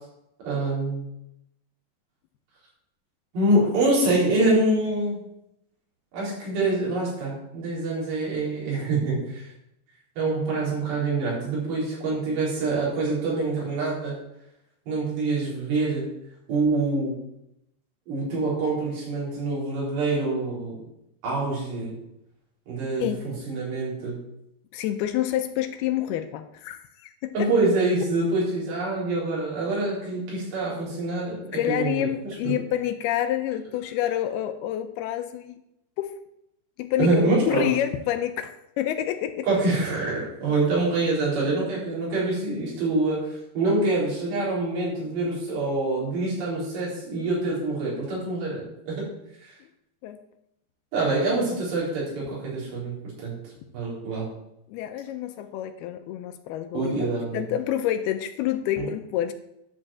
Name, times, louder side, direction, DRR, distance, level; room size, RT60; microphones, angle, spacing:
voice 1, 0.4-1.0 3.3-5.2 6.1-9.5 10.2-14.2 14.9-16.1 16.5-17.1 18.1-20.7 21.2-22.0 22.7-24.2 27.3-32.1 32.4-32.5 37.0-37.7 39.4-49.1 49.4-49.5 50.9-52.9 53.2-53.4 53.7-54.3 56.7-57.4, right 2 dB, 85° right, -6 dB, 6.4 m, -25 dB
voice 2, 24.7-27.5 31.5-35.6 36.0-36.1 36.8-37.1 37.4-39.5 50.0-50.2 54.7-57.1 57.3-59.3, left 12 dB, 80° left, 9 dB, 2.5 m, -28 dB
11.0 x 5.3 x 7.2 m, 0.81 s
omnidirectional pair, 4.7 m